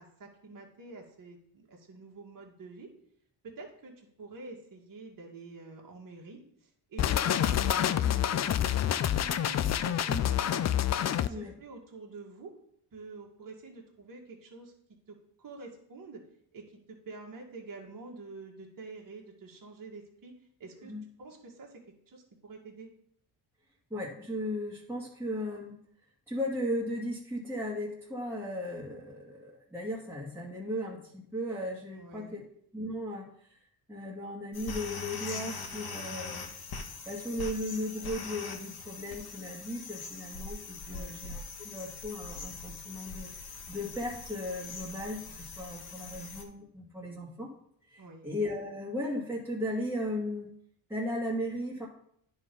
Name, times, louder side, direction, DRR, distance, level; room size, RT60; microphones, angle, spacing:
voice 1, 0.0-2.9 3.4-7.6 7.9-10.6 11.1-12.5 12.9-14.7 15.1-16.2 16.5-22.9 31.9-32.4 40.9-41.2 48.0-48.3, right 3 dB, 50° right, -1 dB, 1.9 m, -48 dB
sound 1, 7.0-11.3, left 10 dB, 40° left, 0.4 m, -27 dB
voice 2, 23.9-25.8 26.3-32.4 32.7-33.5 33.9-36.5 37.1-43.3 43.7-47.5 47.9-50.5 50.9-51.9, left 1 dB, 5° right, -5 dB, 1.9 m, -36 dB
sound 2, 34.5-46.4, left 4 dB, 55° left, 1.5 m, -42 dB
9.7 x 4.0 x 5.4 m, 0.68 s
cardioid pair, 75°, 43 cm